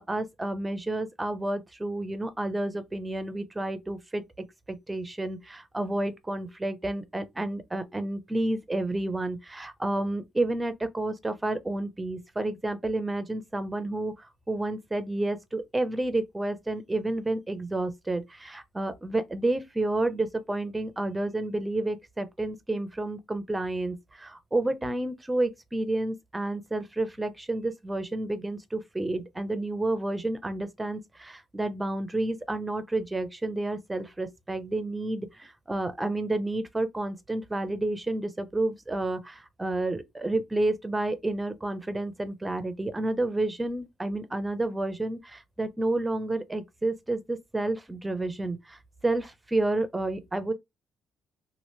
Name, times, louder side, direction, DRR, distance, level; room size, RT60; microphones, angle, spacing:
voice 1, 0.0-4.2 4.7-50.5, right 2 dB, 15° right, 0.6 m, -30 dB
2.9 x 2.5 x 3.1 m
cardioid pair, 90°, 0 cm